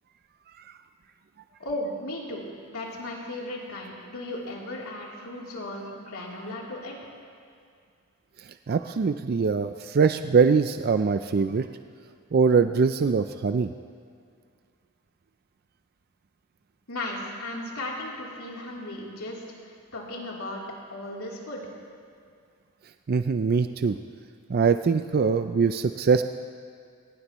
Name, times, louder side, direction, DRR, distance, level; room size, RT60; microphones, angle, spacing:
voice 1, 1.6-6.9 16.9-19.4 19.9-20.6 20.9-21.7, left 1 dB, 80° left, -4 dB, 3.3 m, -36 dB
voice 2, 8.4-11.7 12.3-13.7 23.1-24.0 24.5-26.2, right 5 dB, 45° right, 9 dB, 0.4 m, -23 dB
22.5 x 19.5 x 3.0 m, 2.2 s
head